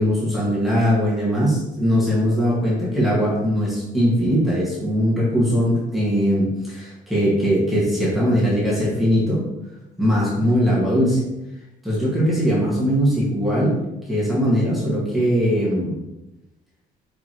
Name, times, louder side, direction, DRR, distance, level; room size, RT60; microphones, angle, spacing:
voice 1, 0.0-9.4 10.0-11.2 11.8-13.7 14.1-16.0, equal, ahead, -8 dB, 1.9 m, -20 dB
6.8 x 4.9 x 3.1 m, 0.95 s
cardioid pair, 150°, 15 cm